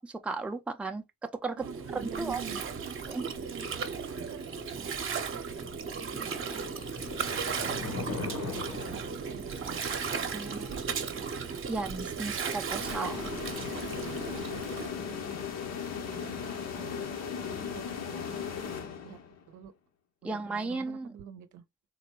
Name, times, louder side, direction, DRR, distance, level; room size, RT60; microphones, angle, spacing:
voice 1, 0.2-1.6 1.9-2.4 3.1-3.3 10.3-10.7 11.7-13.3 20.2-21.1, right 3 dB, 5° right, 0.4 m, -35 dB
Gurgling, 1.6-14.9, right 6 dB, 45° right, 0.8 m, -36 dB
voice 2, 1.6-3.1 3.5-4.9 6.1-6.7 7.2-10.0 10.4-11.5 13.9-15.3 16.0-17.1 17.5-18.4 19.0-19.2 19.5-19.7 20.2-21.6, right 9 dB, 75° right, 0.6 m, -48 dB
sound 1, 5.6-11.0, left 3 dB, 75° left, 1.5 m, -41 dB
sound 2, 12.8-19.4, left 7 dB, 60° left, 0.9 m, -37 dB
3.9 x 2.1 x 3.0 m
cardioid pair, 90°, 30 cm